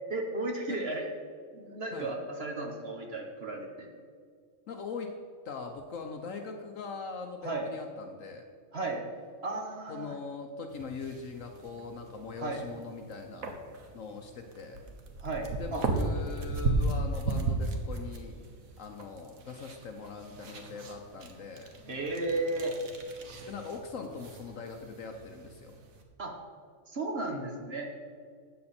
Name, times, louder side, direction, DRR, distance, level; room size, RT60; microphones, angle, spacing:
voice 1, 0.1-1.1 1.5-3.9 7.4-7.7 8.7-9.0 9.4-10.1 12.4-12.6 15.2-15.8 21.8-22.7 26.2-26.3 26.9-27.9, right 2 dB, 45° right, 1 dB, 1.6 m, -34 dB
voice 2, 4.7-5.1 5.4-8.4 9.9-13.5 13.9-14.8 15.6-18.4 18.8-21.8 23.5-25.7, left 4 dB, 65° left, 4 dB, 1.2 m, -41 dB
sound 1, 10.7-26.0, right 2 dB, 70° right, 1.6 m, -36 dB
12.5 x 8.7 x 4.3 m, 2.1 s
omnidirectional pair, 1.5 m